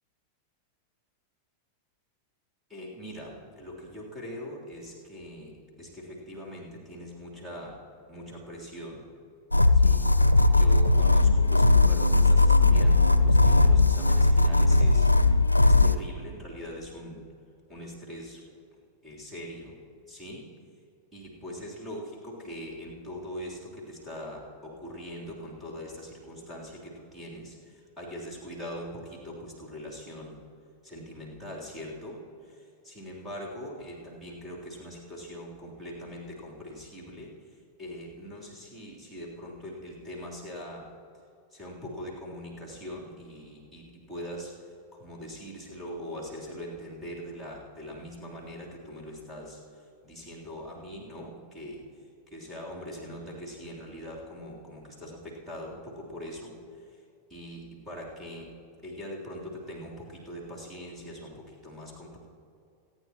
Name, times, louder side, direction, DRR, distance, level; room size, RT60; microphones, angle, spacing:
voice 1, 2.7-7.8 8.1-9.1 9.7-10.1 10.5-15.1 15.6-17.2 17.7-18.4 19.0-19.8 20.1-20.5 21.1-30.4 30.8-40.9 41.5-51.9 52.3-57.0 57.3-58.5 58.8-62.2, equal, 5° right, -3 dB, 3.4 m, -42 dB
sound 1, 9.5-15.9, left 2 dB, 85° left, 0.4 m, -19 dB
27.5 x 9.4 x 3.0 m, 2.5 s
figure-of-eight pair, 90°, 0 cm